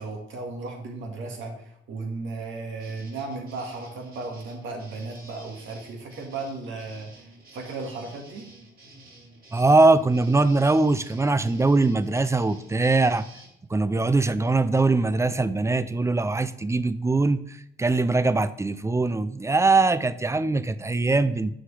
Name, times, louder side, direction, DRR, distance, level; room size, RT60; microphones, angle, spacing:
voice 1, 0.0-8.5, right 3 dB, 75° right, 1 dB, 1.9 m, -35 dB
sound 1, 2.8-13.5, right 1 dB, 45° right, 2.7 m, -50 dB
voice 2, 9.5-13.2 13.7-21.5, right 3 dB, 15° right, 14 dB, 0.4 m, -22 dB
7.6 x 6.2 x 3.3 m, 0.78 s
cardioid pair, 90°, 20 cm